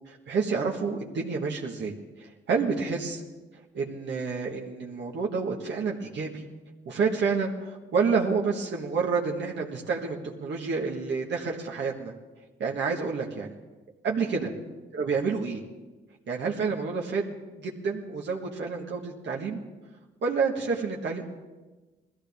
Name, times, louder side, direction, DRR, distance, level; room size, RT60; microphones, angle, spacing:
voice 1, 0.1-3.2 3.7-6.4 6.8-12.1 12.6-13.5 14.0-14.5 14.9-15.6 16.3-17.3 17.6-19.6 20.2-21.2, right 5 dB, 70° right, -1 dB, 1.6 m, -29 dB
20.0 x 15.0 x 3.6 m, 1.2 s
cardioid pair, 75°, 19 cm